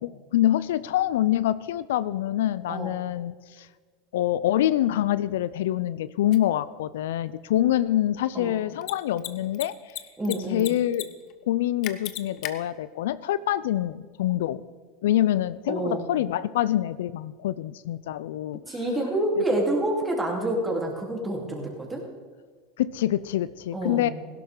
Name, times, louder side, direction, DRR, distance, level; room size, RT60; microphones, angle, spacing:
voice 1, 0.0-3.7 4.1-9.7 10.3-11.1 11.4-14.6 15.0-18.6 22.8-24.1, left 13 dB, 75° left, 16 dB, 0.4 m, -25 dB
Mechanisms, 6.3-6.4 8.7-8.9 9.2-9.3 9.5-10.3 10.6-11.0 11.3-11.4 11.8-12.5, left 15 dB, 55° left, 0.8 m, -33 dB
voice 2, 10.2-10.7 15.7-16.1 18.7-22.0 23.7-24.1, right 1 dB, 15° right, -1 dB, 3.5 m, -28 dB
16.0 x 11.5 x 3.8 m, 1.5 s
hypercardioid pair, 90°, 0 cm